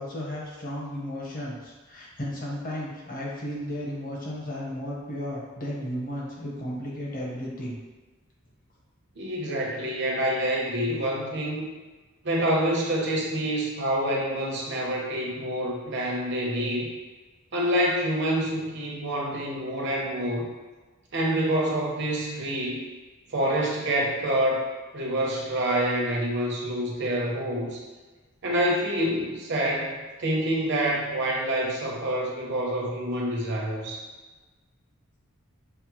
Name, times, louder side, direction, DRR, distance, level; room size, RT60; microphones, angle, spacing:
voice 1, 0.0-7.8, equal, 40° left, -4 dB, 1.0 m, -34 dB
voice 2, 9.2-11.7 12.2-16.9 17.5-20.5 21.1-22.9 23.3-24.6 24.9-27.8 28.4-34.0, right 1 dB, 55° right, -2 dB, 0.8 m, -27 dB
5.7 x 2.1 x 2.9 m, 1.3 s
head